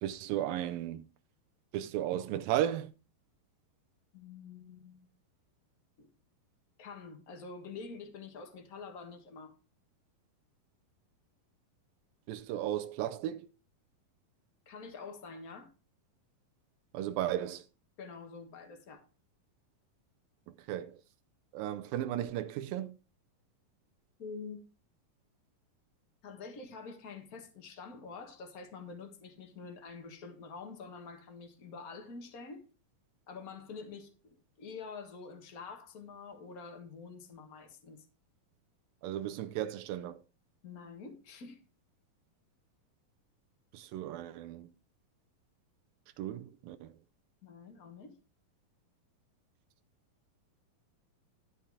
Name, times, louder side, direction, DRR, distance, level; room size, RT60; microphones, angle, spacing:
voice 1, 0.0-1.1 1.7-2.9 12.3-13.5 16.9-17.7 20.6-21.0 21.5-22.9 39.0-40.2 43.7-44.7 46.2-46.9, right 12 dB, 80° right, 2.3 m, -35 dB
voice 2, 4.1-5.1 6.0-6.1 6.8-9.5 14.6-15.7 18.0-19.0 24.2-24.6 26.2-32.7 33.3-38.1 40.6-41.6 47.4-48.1, left 4 dB, 55° left, 0.9 m, -47 dB
12.5 x 5.8 x 4.7 m
omnidirectional pair, 4.2 m